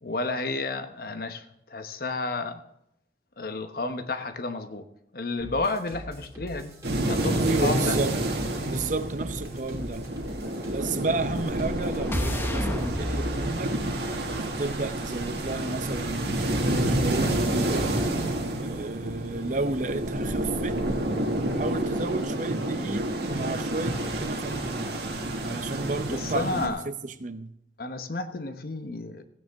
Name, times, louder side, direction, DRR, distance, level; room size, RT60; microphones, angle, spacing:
voice 1, 0.0-2.6 3.4-4.9 5.1-6.8 7.0-8.0 26.1-26.8 27.8-29.2, left 3 dB, 55° left, 9 dB, 1.0 m, -31 dB
sound 1, 5.4-13.0, equal, 20° right, 2.7 m, -43 dB
sound 2, 6.8-26.7, right 1 dB, 70° right, 1.9 m, -29 dB
voice 2, 7.4-8.1 8.7-10.1 10.6-13.7 14.5-17.9 18.6-20.8 21.5-25.0 25.4-27.5, right 3 dB, 45° right, 10 dB, 0.7 m, -32 dB
sound 3, 11.0-15.2, equal, 10° left, 0.8 m, -33 dB
16.0 x 9.3 x 3.5 m, 0.80 s
head